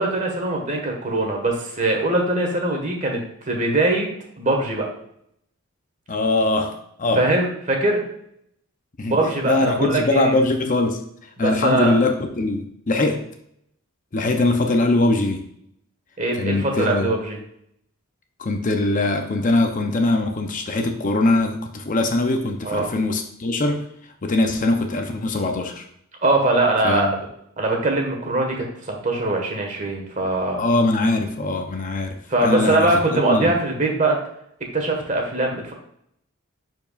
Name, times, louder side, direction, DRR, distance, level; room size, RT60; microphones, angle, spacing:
voice 1, 0.0-4.1 4.4-4.9 7.1-8.0 9.0-10.3 11.4-12.0 16.2-17.4 22.6-22.9 26.2-27.1 27.6-30.6 32.3-34.2 34.7-35.7, right 2 dB, 35° right, 1 dB, 1.5 m, -22 dB
voice 2, 6.1-7.3 9.0-9.2 9.4-11.0 11.4-13.3 14.1-15.5 16.4-17.1 18.4-23.8 24.2-25.9 26.8-27.1 30.6-33.5, left 2 dB, 40° left, 5 dB, 0.6 m, -22 dB
10.5 x 4.6 x 2.4 m, 0.72 s
head